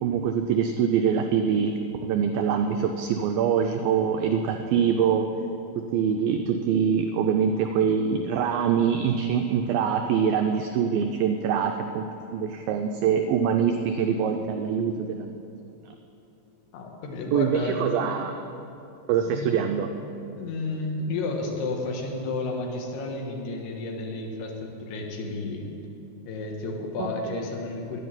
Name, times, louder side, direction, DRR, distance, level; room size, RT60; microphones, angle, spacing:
voice 1, 0.0-5.3 5.9-12.1 12.3-15.3 17.3-18.4 19.1-19.9 27.3-27.4, right 7 dB, 90° right, 5 dB, 2.0 m, -24 dB
voice 2, 16.7-18.1 19.2-19.5 20.4-25.6 26.3-28.0, left 3 dB, 75° left, 1 dB, 3.4 m, -32 dB
11.0 x 10.5 x 8.6 m, 2.9 s
omnidirectional pair, 4.9 m